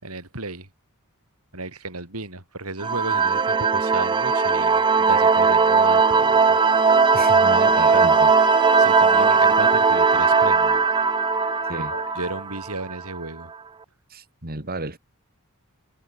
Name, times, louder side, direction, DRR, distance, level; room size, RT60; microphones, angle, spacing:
voice 1, 0.0-0.7 1.5-6.6 7.7-8.1 8.8-10.8 11.7-13.5, right 2 dB, 90° right, 6.4 m, -34 dB
sound 1, 2.8-13.2, right 5 dB, 20° right, 0.3 m, -18 dB
Wind instrument woodwind instrument, 4.2-12.5, left 6 dB, 65° left, 0.9 m, -31 dB
voice 2, 7.1-8.3 11.7-11.9 14.1-15.0, right 2 dB, 45° right, 4.4 m, -32 dB
head